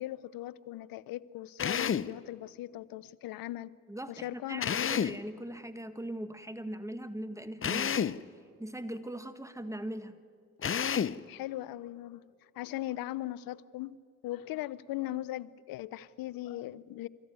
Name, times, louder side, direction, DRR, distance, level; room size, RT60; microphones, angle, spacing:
voice 1, 0.0-3.7 4.1-4.9 11.3-12.3 12.6-14.0 14.2-17.1, left 15 dB, 80° left, 0.6 m, -39 dB
Drill, 1.6-2.1 4.6-5.2 7.6-8.2 10.6-11.2, left 8 dB, 40° left, 0.6 m, -30 dB
voice 2, 3.9-4.6 4.9-8.2 8.6-10.2, right 1 dB, 10° right, 1.8 m, -40 dB
26.5 x 14.0 x 9.5 m
supercardioid pair, 45°, 34 cm